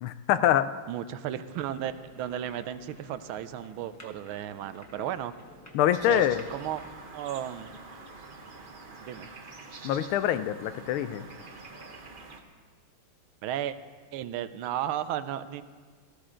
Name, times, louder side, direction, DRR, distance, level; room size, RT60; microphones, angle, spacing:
voice 1, 0.0-0.7 5.7-6.4 9.8-11.3, left 11 dB, 90° left, 12 dB, 1.5 m, -25 dB
voice 2, 0.9-5.3 6.1-6.2 6.5-6.8 7.1-7.7 9.0-9.3 13.4-13.8 14.1-15.6, right 11 dB, 80° right, 12 dB, 1.4 m, -34 dB
sound 1, 1.5-6.9, equal, 10° left, 0.8 m, -52 dB
sound 2, 5.9-12.4, right 3 dB, 45° right, 0.7 m, -46 dB
18.0 x 13.5 x 3.8 m, 1.5 s
omnidirectional pair, 2.3 m